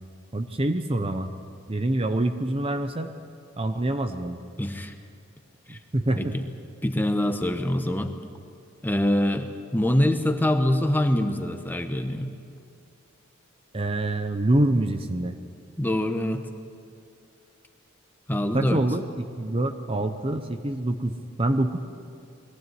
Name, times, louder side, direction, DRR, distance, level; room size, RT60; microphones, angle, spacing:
voice 1, 0.3-1.3 1.7-3.1 3.6-4.4 5.7-6.3 13.7-15.4 18.5-19.1 19.4-21.8, right 1 dB, 25° right, 8 dB, 0.7 m, -25 dB
voice 2, 4.6-4.9 5.7-5.8 6.2-6.4 6.8-8.1 8.8-12.3 15.8-16.5 18.3-18.8, left 1 dB, 10° left, 7 dB, 0.9 m, -24 dB
21.0 x 15.5 x 9.3 m, 2.4 s
head